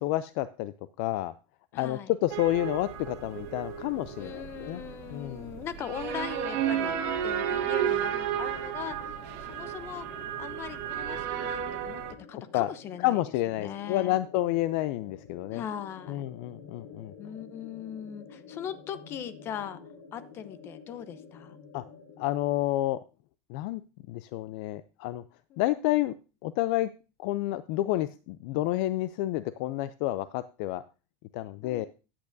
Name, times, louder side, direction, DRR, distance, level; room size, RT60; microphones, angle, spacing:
voice 1, 0.0-1.3 1.7-4.8 5.1-5.5 12.5-12.7 13.0-15.6 16.1-17.1 21.7-21.8 22.2-23.0 23.5-23.8 24.1-25.2 25.6-26.1 26.4-26.9 27.2-30.8 31.3-31.9, left 15 dB, 55° left, 15 dB, 0.4 m, -29 dB
voice 2, 1.7-2.1 4.2-10.1 10.4-12.0 12.3-13.2 13.6-14.2 15.5-16.2 17.2-19.8 20.1-21.6 25.5-25.6 31.6-31.9, left 9 dB, 35° left, 13 dB, 0.8 m, -40 dB
sound 1, 2.3-12.1, right 9 dB, 55° right, 1.6 m, -33 dB
sound 2, 2.9-22.6, left 5 dB, 75° left, 2.8 m, -51 dB
13.5 x 8.7 x 2.6 m, 0.32 s
supercardioid pair, 145°, 7 cm